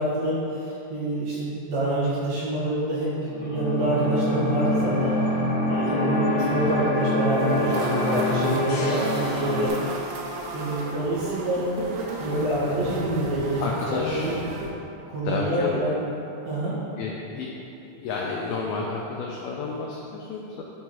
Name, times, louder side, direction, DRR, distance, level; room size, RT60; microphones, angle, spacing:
voice 1, 0.0-5.2 5.7-9.7 10.5-11.6 12.2-13.6 13.9-14.4 15.1-16.0 16.4-16.8, right 1 dB, 65° right, -8 dB, 2.9 m, -26 dB
sound 1, 3.3-9.7, left 1 dB, 65° left, 1.9 m, -25 dB
sound 2, 7.3-14.7, right 3 dB, 85° right, 2.8 m, -35 dB
voice 2, 13.6-14.3 15.2-15.9 17.0-17.5 17.8-20.6, left 4 dB, 90° left, -2 dB, 2.1 m, -30 dB
11.0 x 4.5 x 3.0 m, 2.8 s
omnidirectional pair, 5.1 m